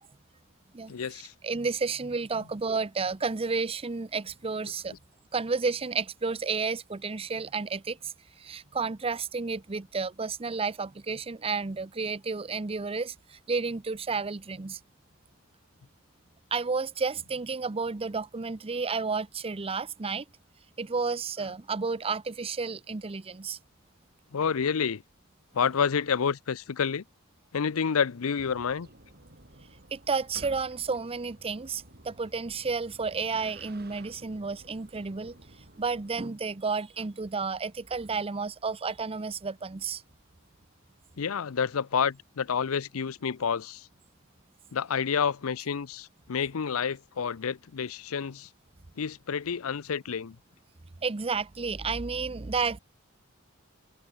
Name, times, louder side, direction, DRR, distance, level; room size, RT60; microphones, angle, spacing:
voice 1, 0.9-1.3 24.3-25.0 25.5-27.0 27.5-28.9 41.2-43.9 44.7-48.5 49.0-50.4, left 6 dB, 85° left, 0.6 m, -29 dB
voice 2, 1.4-4.9 5.3-14.8 16.5-20.2 20.8-23.6 29.9-35.4 35.8-40.0 51.0-52.8, right 4 dB, 25° right, 0.6 m, -31 dB
sound 1, 28.3-36.3, right 1 dB, 50° right, 7.7 m, -52 dB
head